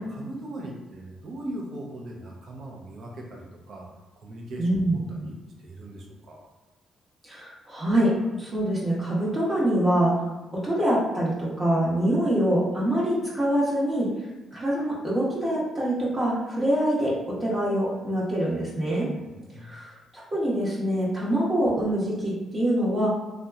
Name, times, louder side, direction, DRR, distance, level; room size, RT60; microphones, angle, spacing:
voice 1, 0.0-3.9 4.2-6.4 19.2-19.7, right 1 dB, 55° right, -1 dB, 0.6 m, -39 dB
voice 2, 4.6-5.0 7.2-10.2 10.6-14.1 14.5-19.1 19.6-23.1, right 1 dB, 30° right, -7 dB, 0.9 m, -25 dB
2.8 x 2.2 x 2.3 m, 1.1 s
cardioid pair, 90°, 0 cm